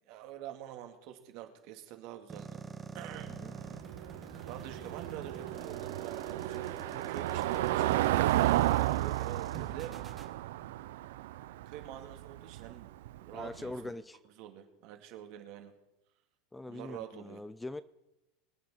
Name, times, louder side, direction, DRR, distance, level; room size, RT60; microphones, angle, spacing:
voice 1, 0.1-2.7 2.9-3.3 4.5-8.0 8.6-10.0 11.7-12.9 13.2-14.0 14.4-15.7 16.6-17.4, right 11 dB, 55° right, 5 dB, 2.1 m, -46 dB
sound 1, 2.3-10.3, right 5 dB, 20° right, 1.4 m, -47 dB
Car passing by / Engine, 3.1-13.8, right 15 dB, 80° right, 0.4 m, -32 dB
voice 2, 13.3-14.2 16.5-17.8, left 2 dB, 10° left, 16 dB, 0.4 m, -43 dB
24.5 x 8.7 x 4.3 m, 0.97 s
supercardioid pair, 135°, 0 cm